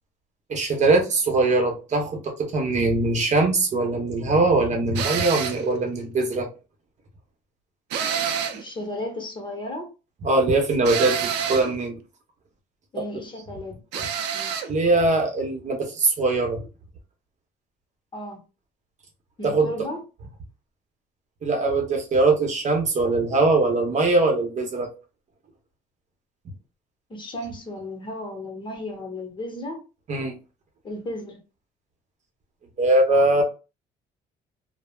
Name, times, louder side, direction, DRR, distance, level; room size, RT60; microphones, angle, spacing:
voice 1, 0.5-6.5 10.2-12.0 13.0-13.1 14.7-16.7 19.4-19.7 21.4-24.9 30.1-30.4 32.8-33.4, right 2 dB, 45° right, 0.8 m, -21 dB
sound 1, 4.9-5.7 7.9-8.7 10.8-11.7 13.9-14.7, right 8 dB, 85° right, 0.5 m, -27 dB
voice 2, 8.5-9.9 12.9-14.0 14.3-14.5 18.1-18.4 19.4-20.0 27.1-29.8 30.8-31.4, left 1 dB, 30° left, 0.9 m, -34 dB
3.1 x 2.0 x 2.3 m
cardioid pair, 110°, 17 cm